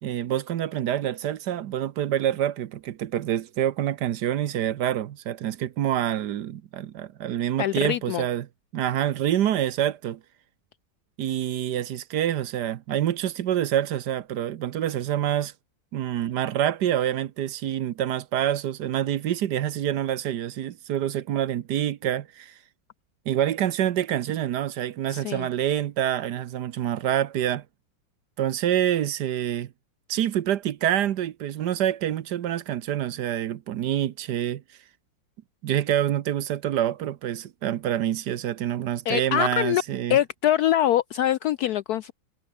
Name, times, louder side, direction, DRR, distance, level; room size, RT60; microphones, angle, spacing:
voice 1, 0.0-8.5 8.7-10.2 11.2-15.5 15.9-22.5 23.3-27.6 28.4-29.7 30.1-34.6 35.6-40.2, right 11 dB, 65° right, 1.3 m, -26 dB
voice 2, 7.6-8.2 25.1-25.5 39.1-39.8 40.1-42.1, left 11 dB, 80° left, 0.8 m, -24 dB
omnidirectional pair, 2.2 m